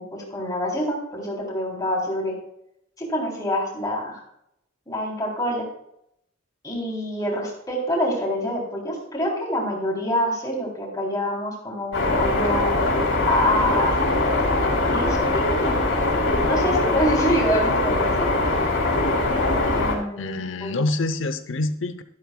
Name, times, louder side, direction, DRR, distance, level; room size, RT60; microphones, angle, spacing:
voice 1, 0.0-2.3 3.0-4.2 4.9-5.6 6.6-12.8 13.3-14.0 14.8-15.8 16.4-18.3 19.7-20.8, equal, 20° left, -2 dB, 3.2 m, -26 dB
sound 1, 11.9-20.0, left 2 dB, 90° left, 3.8 m, -22 dB
voice 2, 20.2-22.0, left 2 dB, 70° left, 10 dB, 0.7 m, -26 dB
13.0 x 12.0 x 2.3 m, 0.76 s
head